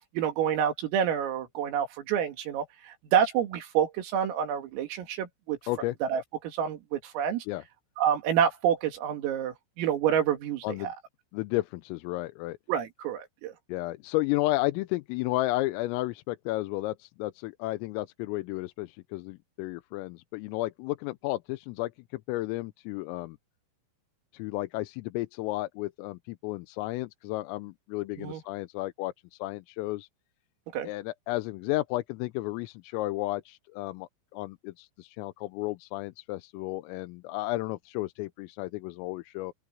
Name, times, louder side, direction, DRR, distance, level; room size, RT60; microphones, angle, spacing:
voice 1, 0.1-5.6 6.1-7.5 8.0-10.9 12.7-13.5 28.2-28.4 30.7-30.9, right 9 dB, 80° right, 5.3 m, -28 dB
voice 2, 11.3-12.6 13.7-23.4 24.3-30.1 30.8-39.5, left 19 dB, 85° left, 3.4 m, -33 dB
open air
omnidirectional pair, 5.9 m